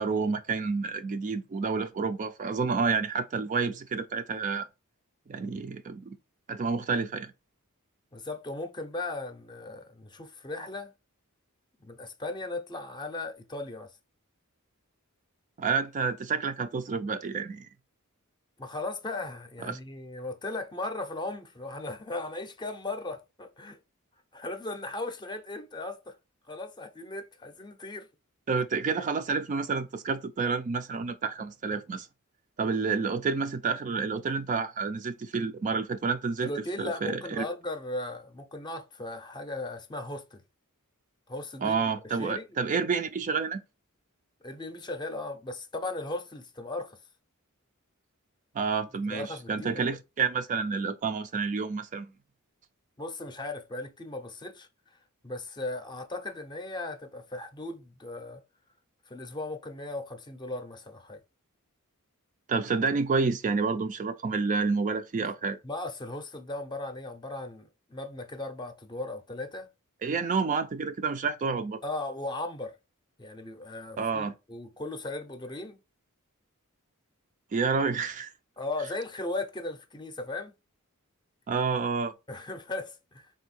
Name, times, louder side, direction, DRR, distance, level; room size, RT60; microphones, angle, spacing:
voice 1, 0.0-4.7 5.3-6.2 6.5-7.3 15.6-17.7 19.6-19.8 28.5-32.1 32.6-36.5 36.8-37.4 41.6-43.6 48.5-52.1 62.5-65.6 70.0-71.8 74.0-74.3 77.5-78.3 81.5-82.1, right 5 dB, 35° right, 0.4 m, -29 dB
voice 2, 8.1-10.9 11.8-13.9 18.6-23.8 24.3-26.2 26.5-28.1 36.4-40.4 41.3-42.5 44.4-47.0 49.1-49.8 53.0-54.7 55.2-58.4 59.1-61.2 65.6-69.7 71.8-72.8 73.2-75.8 78.6-80.5 82.3-83.3, left 2 dB, 20° left, 0.6 m, -37 dB
3.7 x 2.7 x 4.2 m
head